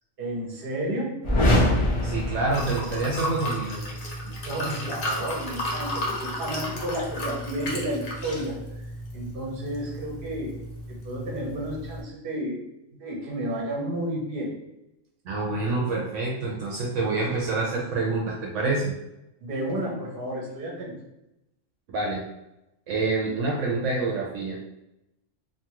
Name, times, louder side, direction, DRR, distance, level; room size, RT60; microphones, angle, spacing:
voice 1, 0.2-1.2 4.4-8.6 9.1-10.5 10.9-12.6 12.9-14.5 19.4-20.9, right 1 dB, 50° right, -3 dB, 0.9 m, -31 dB
sound 1, 1.2-3.2, left 1 dB, 35° left, 0.5 m, -23 dB
Liquid, 1.5-12.0, equal, 60° left, 1.0 m, -34 dB
voice 2, 2.0-3.8 15.3-18.9 21.9-22.2 22.9-24.6, right 3 dB, 75° right, -2 dB, 0.9 m, -27 dB
2.7 x 2.3 x 2.9 m, 0.88 s
omnidirectional pair, 1.3 m